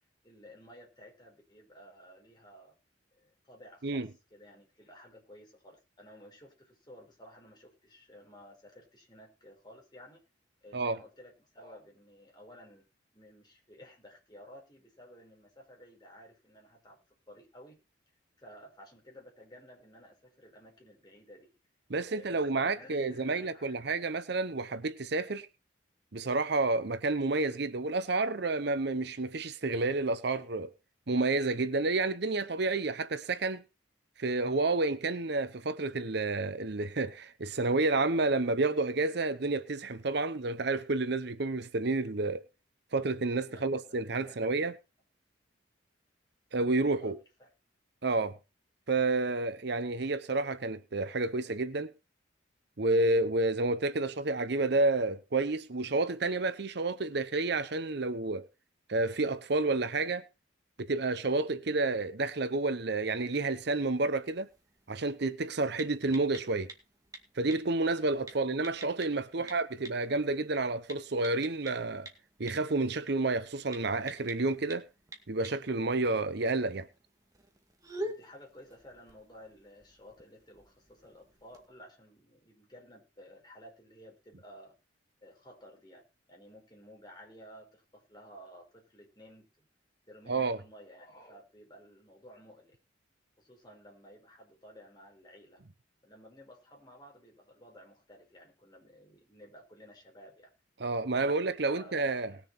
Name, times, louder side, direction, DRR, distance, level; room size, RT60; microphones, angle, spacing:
voice 1, 0.2-2.8 3.1-10.2 10.6-12.9 13.1-17.0 17.3-17.8 18.4-21.5 22.1-23.8 43.5-44.4 47.0-47.5 68.3-68.4 69.3-69.5 77.9-84.8 85.2-89.7 90.1-92.8 93.4-95.6 96.0-100.5 101.1-102.4, equal, 20° left, 4.9 m, -54 dB
voice 2, 21.9-25.5 26.1-30.7 31.1-33.6 34.2-42.5 42.9-44.7 46.5-47.2 48.0-48.4 48.9-51.9 52.8-58.5 58.9-60.2 60.8-64.5 64.9-66.7 67.4-72.1 72.4-74.9 75.3-76.9 90.3-90.6 100.8-102.3, right 3 dB, 60° right, 0.8 m, -30 dB
sound 1, 63.4-81.7, right 1 dB, 20° right, 2.1 m, -49 dB
19.5 x 7.0 x 4.2 m
head